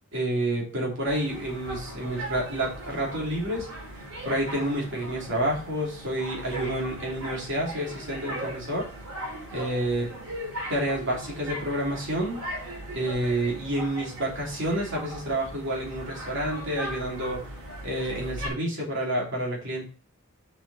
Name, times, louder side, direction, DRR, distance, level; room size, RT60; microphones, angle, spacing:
voice 1, 0.1-3.7 4.2-8.9 9.5-10.1 10.7-12.4 12.9-17.5 17.8-19.8, right 1 dB, 60° right, -2 dB, 3.1 m, -29 dB
sound 1, 1.0-18.5, right 1 dB, 85° right, 3.7 m, -39 dB
7.1 x 5.5 x 4.1 m, 0.40 s
head